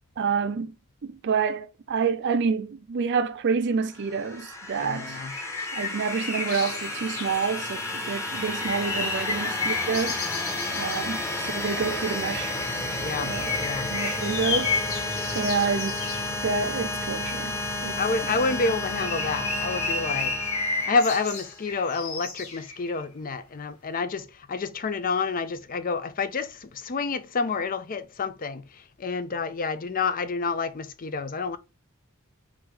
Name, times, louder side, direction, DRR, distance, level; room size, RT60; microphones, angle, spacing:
voice 1, 0.2-0.7 1.0-5.2 5.7-10.2 10.7-12.6 13.2-13.6 13.9-14.8 15.3-16.1 16.4-17.5 17.8-18.0, right 5 dB, 55° right, 0.4 m, -28 dB
sound 1, 4.0-21.6, left 2 dB, 15° left, 1.0 m, -32 dB
voice 2, 4.8-5.7 13.0-13.9 18.0-20.3 20.9-31.6, left 4 dB, 40° left, 0.5 m, -29 dB
sound 2, 5.3-7.5 8.3-11.1 13.3-16.3 18.5-23.0, left 4 dB, 90° left, 1.6 m, -32 dB
3.9 x 2.9 x 4.6 m
head